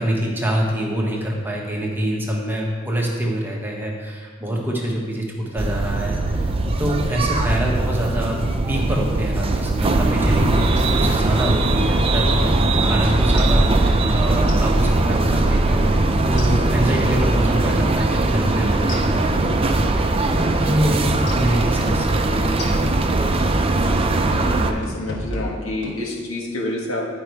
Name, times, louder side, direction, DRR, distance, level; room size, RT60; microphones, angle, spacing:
voice 1, 0.0-6.5 6.8-8.4 8.7-19.5 20.3-22.3 22.6-22.8, right 1 dB, 10° right, -2 dB, 1.1 m, -25 dB
sound 1, 5.6-24.7, right 2 dB, 30° right, 0.5 m, -20 dB
sound 2, 10.2-12.0 12.3-12.5 12.8-14.0 14.3-18.0 18.3-18.5 18.8-20.0 20.3-20.5 20.8-24.0 24.3-24.6 24.8-26.0, equal, 60° left, 1.2 m, -32 dB
voice 2, 24.3-27.1, left 2 dB, 80° left, -3 dB, 1.8 m, -28 dB
10.0 x 5.2 x 4.6 m, 1.5 s
head